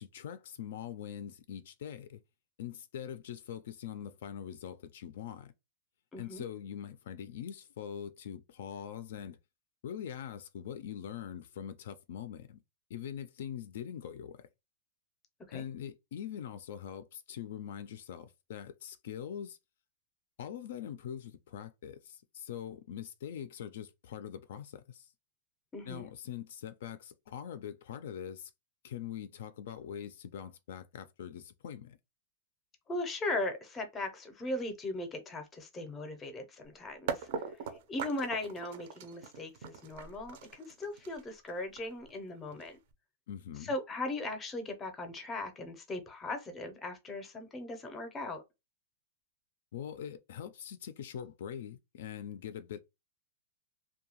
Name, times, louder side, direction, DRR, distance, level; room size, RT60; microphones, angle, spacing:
voice 1, 0.0-2.2 2.6-5.5 6.2-9.4 9.8-12.6 12.9-14.4 15.5-19.6 20.4-25.1 25.8-28.5 28.8-32.0 43.3-43.7 49.7-52.8, left 9 dB, 65° left, 0.3 m, -43 dB
voice 2, 6.1-6.4 15.5-15.6 25.7-26.1 32.9-37.3 37.9-42.8 43.6-48.4, left 2 dB, 15° left, 0.5 m, -38 dB
sound 1, 37.1-42.9, right 6 dB, 50° right, 0.5 m, -41 dB
2.7 x 2.2 x 2.9 m
supercardioid pair, 170°, 0 cm